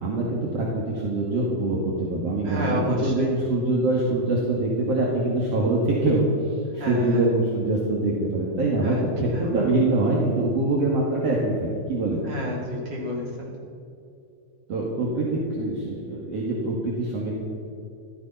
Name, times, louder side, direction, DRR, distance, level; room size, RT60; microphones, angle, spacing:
voice 1, 0.0-6.3 6.7-12.2 14.7-17.3, right 2 dB, 55° right, -3 dB, 3.0 m, -24 dB
voice 2, 2.4-3.3 6.8-7.3 8.8-9.5 12.2-13.5, equal, 35° right, -3 dB, 3.8 m, -31 dB
15.0 x 13.5 x 5.6 m, 2.6 s
omnidirectional pair, 3.4 m